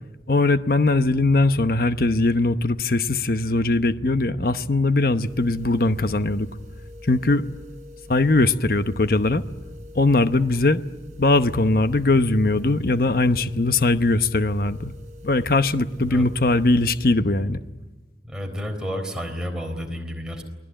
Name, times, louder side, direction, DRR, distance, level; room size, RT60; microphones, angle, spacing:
voice 1, 0.3-6.5 7.0-7.5 8.1-9.4 9.9-10.8 11.2-14.9 15.2-17.6, left 2 dB, 55° left, 0.9 m, -20 dB
sound 1, 5.2-17.0, left 1 dB, 40° right, 5.9 m, -44 dB
voice 2, 18.3-20.4, equal, 5° right, 3.9 m, -31 dB
29.0 x 20.0 x 8.9 m
head